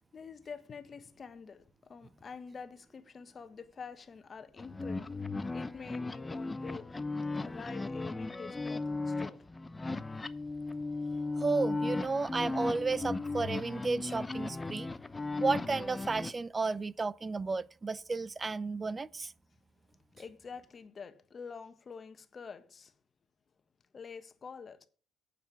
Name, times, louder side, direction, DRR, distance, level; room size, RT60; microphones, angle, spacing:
voice 1, 0.1-5.2 5.5-6.9 7.4-9.5 20.1-22.9 23.9-24.9, left 5 dB, 40° left, 1.4 m, -47 dB
sound 1, 4.6-16.3, left 3 dB, 20° left, 0.8 m, -36 dB
voice 2, 11.4-14.9 15.4-19.3, right 4 dB, 30° right, 0.5 m, -33 dB
9.3 x 6.8 x 7.0 m
hypercardioid pair, 60°, 0 cm